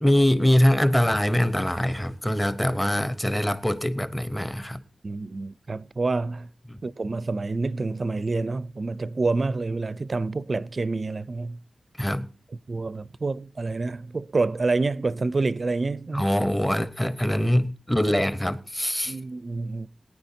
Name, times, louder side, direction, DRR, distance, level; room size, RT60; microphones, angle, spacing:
voice 1, 0.0-4.8 6.7-6.8 12.0-12.3 16.1-19.1, equal, 10° left, 0.8 m, -23 dB
voice 2, 5.0-6.5 6.8-11.6 12.7-16.3 19.1-19.9, right 3 dB, 40° right, 0.5 m, -28 dB
22.0 x 9.6 x 2.7 m
wide cardioid pair, 115°, 0 cm